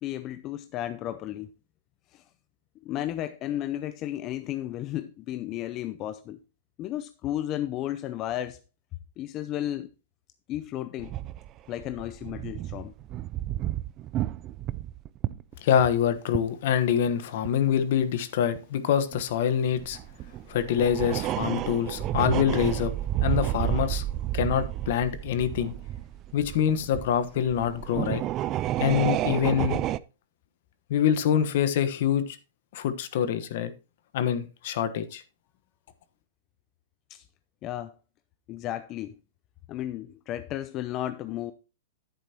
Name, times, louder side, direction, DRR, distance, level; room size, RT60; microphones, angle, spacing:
voice 1, 0.0-1.5 2.1-2.2 2.8-6.4 6.8-8.6 9.2-9.9 10.5-11.1 11.7-12.9 37.1-37.2 37.6-37.9 38.5-39.2 39.7-41.5, left 12 dB, 35° left, 0.5 m, -33 dB
sound 1, 11.0-16.6 16.9-17.0 17.4-17.5 18.6-18.7 19.1-19.2 19.7-30.0, right 13 dB, 30° right, 0.4 m, -31 dB
voice 2, 15.6-20.0 20.5-22.9 23.2-24.0 24.3-25.7 26.3-28.2 28.8-29.8 30.9-32.4 32.7-33.7 34.1-35.2, left 9 dB, 60° left, 1.2 m, -25 dB
10.5 x 8.9 x 2.9 m
hypercardioid pair, 135°, 0 cm